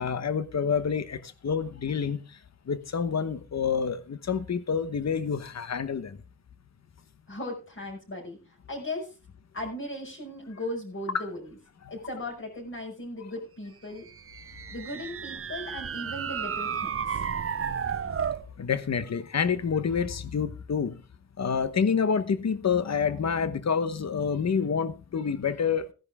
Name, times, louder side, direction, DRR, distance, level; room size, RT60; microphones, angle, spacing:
voice 1, 0.0-2.4 2.7-6.2 11.1-11.3 11.8-11.9 18.6-21.0 21.4-25.9, left 6 dB, 65° left, 1.1 m, -28 dB
voice 2, 7.3-9.1 9.5-11.5 11.9-14.1 14.4-17.2, left 1 dB, 45° left, 5.6 m, -37 dB
sound 1, 14.1-18.5, right 7 dB, 50° right, 0.6 m, -32 dB
16.5 x 10.5 x 3.6 m
wide cardioid pair, 125°, 29 cm